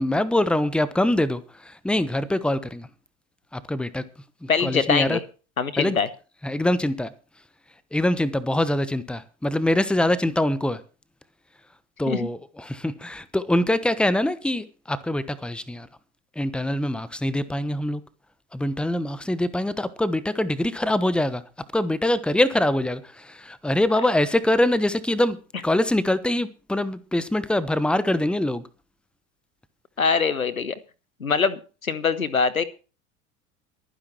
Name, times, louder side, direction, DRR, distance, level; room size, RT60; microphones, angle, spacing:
voice 1, 0.0-2.9 3.5-4.0 4.4-5.2 5.8-6.0 6.4-7.1 7.9-10.8 12.0-15.9 16.4-18.0 18.5-21.4 21.7-25.4 25.6-28.7, left 1 dB, ahead, 1.1 m, -24 dB
voice 2, 4.5-5.2 5.6-6.1 12.1-12.3 30.0-30.7 31.2-32.6, left 5 dB, 85° left, 0.9 m, -23 dB
23.0 x 9.9 x 3.1 m
figure-of-eight pair, 75°, 41 cm